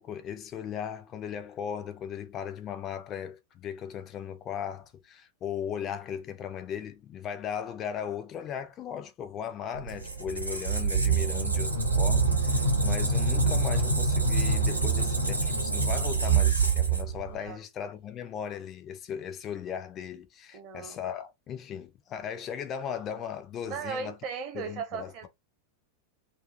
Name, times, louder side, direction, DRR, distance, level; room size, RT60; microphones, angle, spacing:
voice 1, 0.0-24.2 24.5-25.3, left 8 dB, 30° left, 0.4 m, -37 dB
Squeak, 9.8-17.5, right 4 dB, 85° right, 0.8 m, -25 dB
voice 2, 20.5-21.0 23.7-25.3, right 6 dB, 40° right, 0.8 m, -37 dB
2.6 x 2.4 x 2.5 m
figure-of-eight pair, 90°, 0 cm